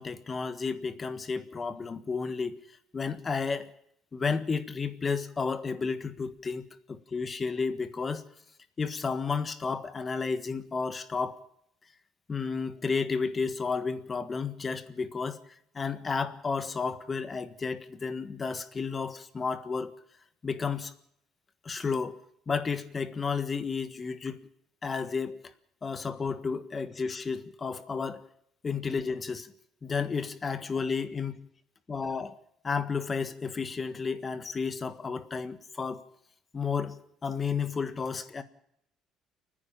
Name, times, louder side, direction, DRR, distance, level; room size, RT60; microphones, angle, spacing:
voice 1, 0.0-3.7 4.1-8.2 8.8-11.4 12.3-15.4 15.7-19.9 20.4-20.9 21.6-22.2 22.5-24.5 24.8-25.4 25.8-28.3 28.6-29.5 29.8-31.4 31.9-32.3 32.6-36.0 36.5-38.4, left 5 dB, 25° left, 1.6 m, -32 dB
30.0 x 10.0 x 8.8 m
cardioid pair, 135°, 0 cm